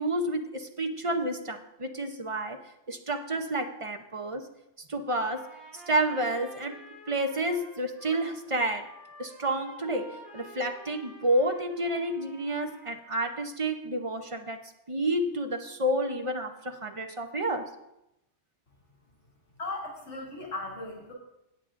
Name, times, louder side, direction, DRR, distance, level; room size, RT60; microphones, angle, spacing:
voice 1, 0.0-2.6 2.9-4.5 4.9-6.8 7.1-8.9 9.2-17.7, right 1 dB, 35° right, 5 dB, 0.7 m, -30 dB
Trumpet, 5.2-13.3, equal, 55° left, 4.4 m, -50 dB
voice 2, 19.6-21.1, left 2 dB, 80° left, -2 dB, 2.8 m, -37 dB
17.0 x 8.3 x 2.5 m, 0.88 s
omnidirectional pair, 1.2 m